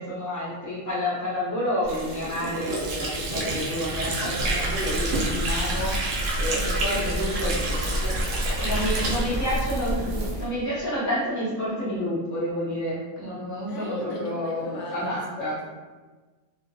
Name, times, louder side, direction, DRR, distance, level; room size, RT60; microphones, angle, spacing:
voice 1, 0.0-5.9 6.3-8.2 8.6-10.1 10.4-15.5, equal, 20° left, -9 dB, 0.7 m, -29 dB
Water / Sink (filling or washing), 1.8-10.4, right 2 dB, 85° right, 1.0 m, -30 dB
sound 1, 4.4-10.5, equal, 65° right, 0.4 m, -29 dB
voice 2, 6.5-9.2 13.7-15.7, left 2 dB, 75° left, -1 dB, 0.9 m, -38 dB
2.5 x 2.1 x 2.7 m, 1.3 s
omnidirectional pair, 1.2 m